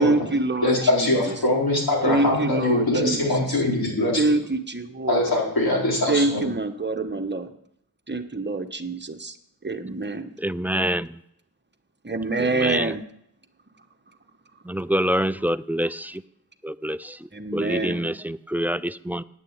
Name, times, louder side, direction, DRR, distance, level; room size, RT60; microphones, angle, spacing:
voice 1, 0.0-1.1 2.0-3.6 4.2-5.4 6.1-7.5 8.1-9.3 9.6-10.3 12.0-13.0 17.3-18.1, right 2 dB, 30° right, 6 dB, 1.2 m, -26 dB
voice 2, 0.6-4.2 5.1-6.5, left 1 dB, 75° left, -3 dB, 4.4 m, -22 dB
voice 3, 10.4-11.2 12.5-12.9 14.7-16.2 16.6-17.2 17.5-19.2, equal, 5° right, 15 dB, 0.4 m, -26 dB
9.5 x 6.6 x 8.9 m, 0.74 s
cardioid pair, 45°, 37 cm